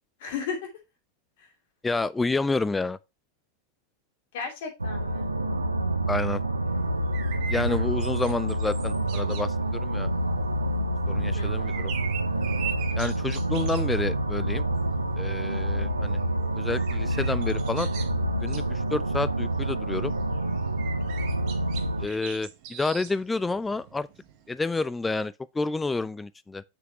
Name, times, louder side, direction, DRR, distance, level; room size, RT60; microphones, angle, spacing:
voice 1, 0.2-0.7 1.4-1.5 4.3-5.3 11.3-11.9, left 6 dB, 50° left, 2.7 m, -35 dB
voice 2, 1.8-3.0 6.1-6.4 7.5-10.1 11.1-11.9 13.0-14.6 15.2-16.2 16.6-17.9 18.4-20.1 22.0-24.1 24.5-26.6, left 3 dB, 10° left, 0.3 m, -29 dB
sound 1, 4.8-22.1, right 1 dB, 80° right, 0.8 m, -27 dB
sound 2, 6.7-24.6, right 8 dB, 45° right, 1.4 m, -43 dB
7.2 x 6.3 x 2.9 m
figure-of-eight pair, 90°, 0 cm